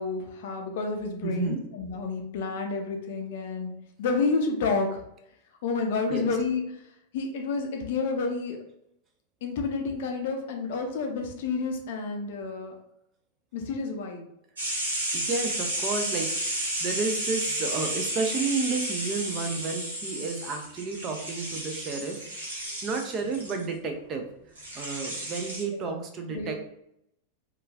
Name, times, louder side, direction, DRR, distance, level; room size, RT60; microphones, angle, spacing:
voice 1, 0.0-5.0 5.6-6.6 7.1-8.6 9.4-12.7 13.5-14.2 25.8-26.0 26.3-26.5, left 4 dB, 55° left, 3 dB, 0.5 m, -30 dB
voice 2, 1.2-1.7 6.1-6.3 15.1-24.3 24.7-26.5, right 4 dB, 30° right, 4 dB, 0.4 m, -32 dB
sound 1, 14.6-23.6 24.6-25.6, right 1 dB, 75° right, 0.9 m, -32 dB
3.0 x 2.3 x 2.3 m, 0.76 s
figure-of-eight pair, 90°, 0 cm